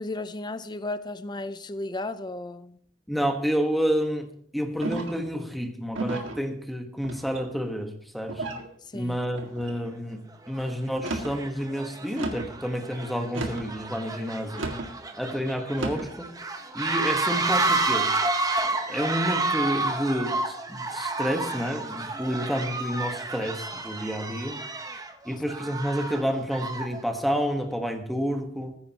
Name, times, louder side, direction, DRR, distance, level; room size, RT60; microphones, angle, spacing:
voice 1, 0.0-2.8 8.9-9.2, left 2 dB, 20° left, 13 dB, 0.6 m, -34 dB
voice 2, 3.1-4.3 4.5-8.5 8.9-10.2 10.5-14.7 15.2-16.3 16.7-18.1 18.9-24.6 25.2-28.8, equal, ahead, 5 dB, 1.3 m, -29 dB
sound 1, 4.8-5.3 5.9-6.4 7.0-7.6 8.3-8.7 9.3-9.8 10.9-11.4 12.1-12.5 13.3-13.7 14.5-14.9 15.7-16.1, right 2 dB, 75° right, 2.0 m, -33 dB
sound 2, 9.6-9.7 10.5-10.7 11.0-27.0, right 3 dB, 20° right, 1.1 m, -30 dB
20.0 x 9.8 x 2.9 m, 0.62 s
head